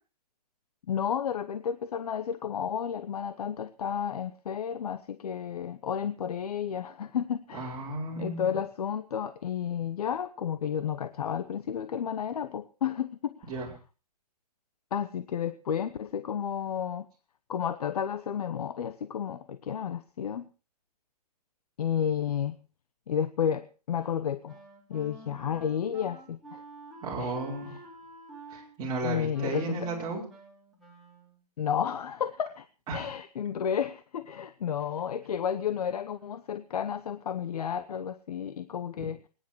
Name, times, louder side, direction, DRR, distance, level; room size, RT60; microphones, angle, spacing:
voice 1, 0.9-7.8 8.2-13.3 14.9-17.1 17.5-20.5 21.8-22.5 23.1-24.5 24.9-26.6 27.2-27.3 29.0-29.9 31.6-32.6 32.9-39.2, left 8 dB, 65° left, 12 dB, 0.9 m, -32 dB
voice 2, 7.5-8.6 13.4-13.7 27.0-27.7 28.5-30.2 32.9-33.1 39.0-39.1, right 3 dB, 20° right, -3 dB, 5.3 m, -34 dB
Wind instrument woodwind instrument, 23.9-31.4, right 2 dB, ahead, 4.2 m, -50 dB
21.0 x 10.5 x 4.6 m, 0.36 s
hypercardioid pair, 150°, 21 cm